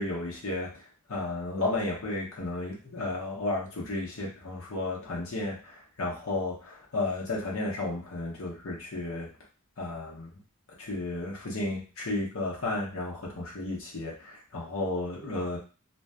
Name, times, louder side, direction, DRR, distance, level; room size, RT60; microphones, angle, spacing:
voice 1, 0.0-9.3 9.8-10.4 10.7-15.6, left 2 dB, 65° left, -3 dB, 0.7 m, -33 dB
2.6 x 2.2 x 2.2 m, 0.34 s
head